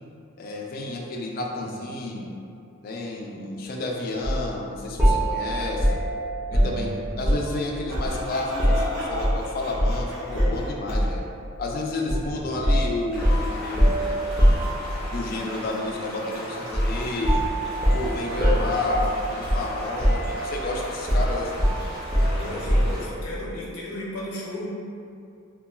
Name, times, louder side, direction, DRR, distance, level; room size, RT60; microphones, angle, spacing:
voice 1, 0.4-2.3 2.8-5.9 6.6-11.2 11.6-14.0 15.1-17.5 17.9-21.7, left 2 dB, 45° left, -1 dB, 0.3 m, -30 dB
sound 1, 4.2-4.4 5.0-7.6 7.9-9.4 9.8-10.0 10.4-11.3 12.1-12.3 12.6-15.2 16.7-17.0 17.2-19.7 20.0-20.6 21.1-23.1, equal, 10° right, 0.5 m, -23 dB
voice 2, 6.5-7.0 12.2-12.6 22.2-24.7, left 1 dB, 85° left, -5 dB, 0.6 m, -35 dB
Sawing, 7.9-11.1, right 1 dB, 60° right, 0.6 m, -35 dB
sound 2, 13.1-23.0, equal, 25° right, 0.9 m, -37 dB
2.8 x 2.3 x 2.2 m, 2.5 s
head